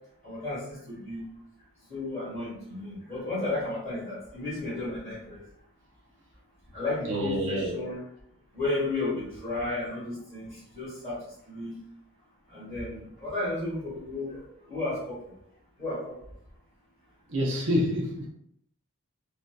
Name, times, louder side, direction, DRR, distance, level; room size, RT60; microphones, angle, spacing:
voice 1, 0.2-1.2 1.9-5.4 6.7-8.0 8.5-11.2 11.5-11.7 12.5-14.4 14.7-15.1 15.8-16.1, left 2 dB, 15° left, -12 dB, 1.4 m, -33 dB
voice 2, 7.0-7.7 17.3-18.3, equal, 60° right, -2 dB, 0.6 m, -27 dB
2.6 x 2.4 x 2.2 m, 0.71 s
head